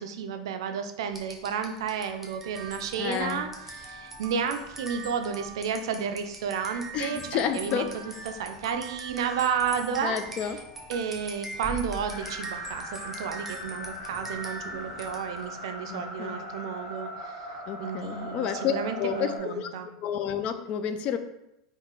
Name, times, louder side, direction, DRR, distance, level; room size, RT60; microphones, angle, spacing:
voice 1, 0.0-7.8 8.2-10.6 10.9-19.9, right 6 dB, 80° right, 7 dB, 0.4 m, -32 dB
sound 1, 1.1-15.6, right 3 dB, 10° right, 0.6 m, -42 dB
voice 2, 3.0-3.4 6.9-7.9 10.0-10.6 15.9-16.4 17.7-19.7 20.0-21.2, left 8 dB, 45° left, 9 dB, 0.3 m, -30 dB
sound 2, 12.1-19.4, left 1 dB, 75° left, 1.1 m, -39 dB
3.0 x 2.4 x 3.6 m, 0.84 s
hypercardioid pair, 110°, 3 cm